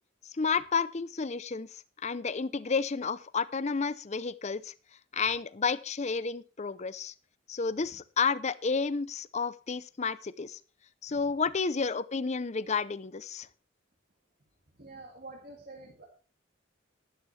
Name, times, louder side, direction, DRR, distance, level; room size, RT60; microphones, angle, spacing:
voice 1, 0.4-1.7 2.0-4.7 5.1-7.1 7.5-10.6 11.0-13.5, left 5 dB, 35° left, 17 dB, 0.6 m, -31 dB
voice 2, 14.8-16.1, right 2 dB, 50° right, -1 dB, 2.2 m, -47 dB
12.5 x 11.5 x 3.3 m, 0.36 s
head